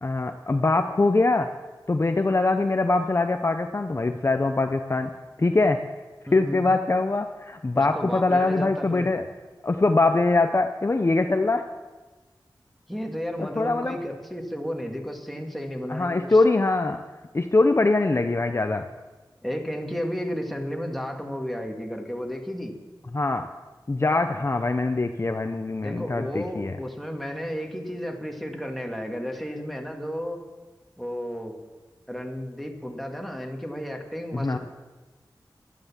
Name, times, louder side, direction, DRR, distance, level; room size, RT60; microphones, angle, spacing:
voice 1, 0.0-1.5 1.9-5.1 5.4-5.8 6.3-9.2 9.6-11.7 13.4-14.0 15.9-17.0 17.3-18.9 23.1-23.5 23.9-26.7 34.3-34.6, left 3 dB, 35° left, 6 dB, 0.7 m, -23 dB
voice 2, 6.3-6.7 7.7-9.1 12.9-16.4 19.4-22.7 25.8-30.4 31.0-31.5 32.1-34.6, equal, ahead, 2 dB, 2.1 m, -33 dB
12.5 x 11.5 x 7.4 m, 1.2 s
wide cardioid pair, 85°, 8 cm